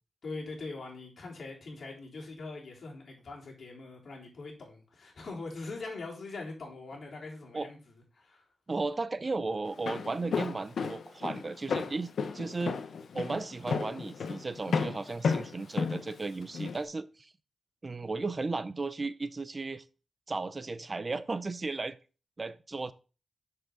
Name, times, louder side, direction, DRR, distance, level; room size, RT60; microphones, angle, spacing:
voice 1, 0.2-7.8 8.1-8.4, left 3 dB, 60° left, 3.5 m, -42 dB
voice 2, 8.7-12.8 13.1-17.3 17.8-19.8 20.3-22.0 22.4-22.9, right 3 dB, 35° right, 0.6 m, -35 dB
Walk footsteps, 9.7-16.8, left 5 dB, 80° left, 0.8 m, -33 dB
7.1 x 6.7 x 3.8 m
wide cardioid pair, 95°, 0 cm